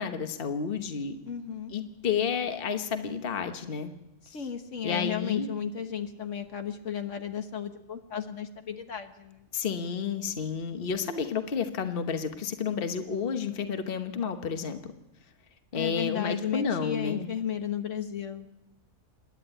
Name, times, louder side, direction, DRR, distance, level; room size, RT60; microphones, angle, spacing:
voice 1, 0.0-1.2 1.7-3.9 4.3-4.5 4.8-5.5 9.5-14.9 15.7-17.3, left 6 dB, 45° left, 8 dB, 1.3 m, -31 dB
voice 2, 1.3-1.7 4.3-9.4 15.7-18.5, left 8 dB, 65° left, 7 dB, 1.5 m, -34 dB
27.0 x 10.5 x 9.0 m, 0.93 s
omnidirectional pair, 1.4 m